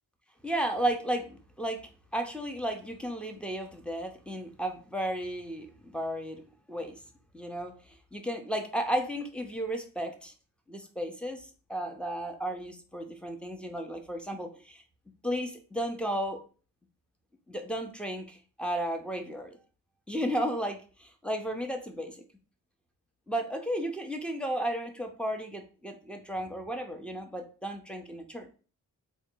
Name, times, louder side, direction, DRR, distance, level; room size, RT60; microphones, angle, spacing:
voice 1, 0.4-1.8 2.1-6.4 6.7-7.0 7.3-7.7 8.1-10.3 10.7-11.4 11.7-14.8 15.2-16.4 17.5-19.6 20.1-22.2 23.3-28.5, right 1 dB, 5° left, 3 dB, 0.6 m, -33 dB
3.7 x 2.2 x 4.4 m, 0.38 s
wide cardioid pair, 110°, 36 cm